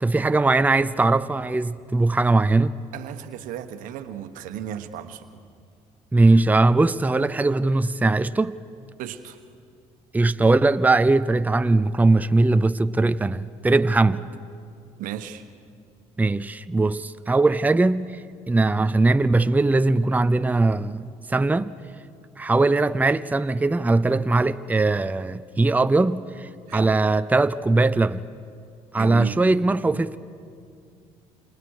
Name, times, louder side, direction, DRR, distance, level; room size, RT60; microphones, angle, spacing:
voice 1, 0.0-2.7 6.1-8.6 10.1-14.3 16.2-21.7 22.4-28.3 28.9-30.2, right 2 dB, 10° right, 0.6 m, -20 dB
voice 2, 2.9-5.4 9.0-9.4 15.0-15.4 26.7-26.9 28.9-29.4, right 10 dB, 75° right, 1.2 m, -34 dB
28.0 x 27.5 x 4.8 m
supercardioid pair, 75°, 14 cm